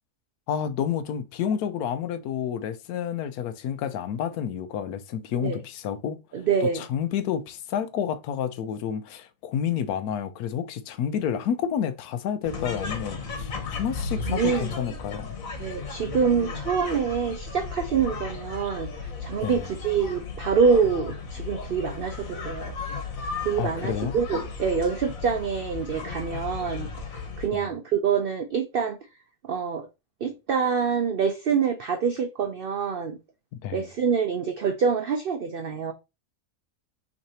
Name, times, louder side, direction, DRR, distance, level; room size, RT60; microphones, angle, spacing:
voice 1, 0.5-6.2 6.6-15.4 19.4-19.7 23.6-24.2 27.5-27.7 33.6-33.9, left 8 dB, 85° left, 1.1 m, -30 dB
voice 2, 6.3-6.9 14.2-14.7 15.6-18.9 19.2-22.7 23.4-26.9 27.4-29.0 29.4-29.9 30.2-33.2 33.7-35.9, right 6 dB, 85° right, 0.5 m, -26 dB
sound 1, 12.4-27.5, left 4 dB, 65° left, 1.5 m, -35 dB
5.9 x 3.2 x 2.8 m
omnidirectional pair, 1.6 m